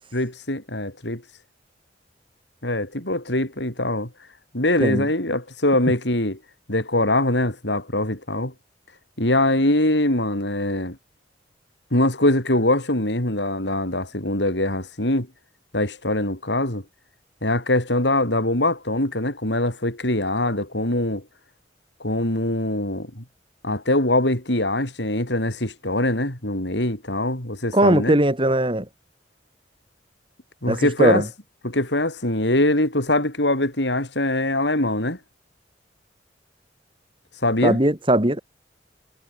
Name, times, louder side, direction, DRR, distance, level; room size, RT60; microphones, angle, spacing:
voice 1, 0.1-1.2 2.6-4.1 4.5-6.4 6.7-8.5 9.2-11.0 11.9-15.3 15.7-16.8 17.4-21.2 22.0-23.2 23.6-28.2 30.6-31.2 31.6-35.2 37.4-37.8, left 1 dB, 70° left, 6.5 m, -23 dB
voice 2, 27.7-28.9 30.7-31.3 37.6-38.4, right 1 dB, 30° right, 4.0 m, -19 dB
head